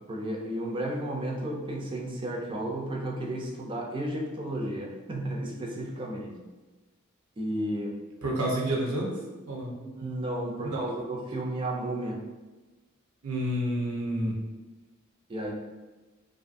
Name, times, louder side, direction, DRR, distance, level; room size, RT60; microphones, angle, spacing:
voice 1, 0.0-6.4 7.4-8.0 9.8-12.2 15.3-15.5, right 1 dB, 25° right, -1 dB, 0.4 m, -33 dB
voice 2, 8.2-9.1 9.5-9.7 10.7-10.8 13.2-14.3, right 1 dB, 80° right, -2 dB, 0.7 m, -29 dB
2.6 x 2.4 x 2.5 m, 1.2 s
head